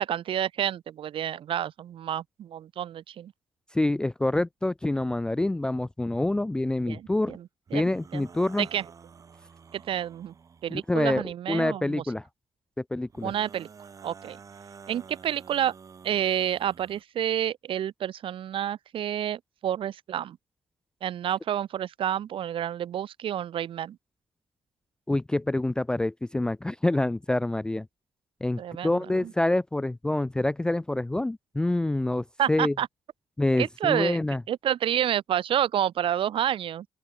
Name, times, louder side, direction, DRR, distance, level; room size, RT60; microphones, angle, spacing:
voice 1, 0.0-3.3 6.9-7.8 8.1-8.2 8.6-8.8 9.7-10.3 10.6-12.0 13.2-13.7 14.0-14.4 14.9-15.7 16.0-20.4 21.0-24.0 28.6-29.3 32.4-32.9 33.6-34.2 34.5-36.9, right 10 dB, 50° right, 1.1 m, -29 dB
voice 2, 3.7-7.4 7.7-8.7 10.7-12.2 12.8-13.3 25.1-27.9 28.4-32.7 33.4-34.4, left 2 dB, 5° left, 0.4 m, -27 dB
sound 1, 7.7-11.1 13.1-17.0, right 6 dB, 30° right, 4.3 m, -50 dB
open air
cardioid pair, 180°, 11 cm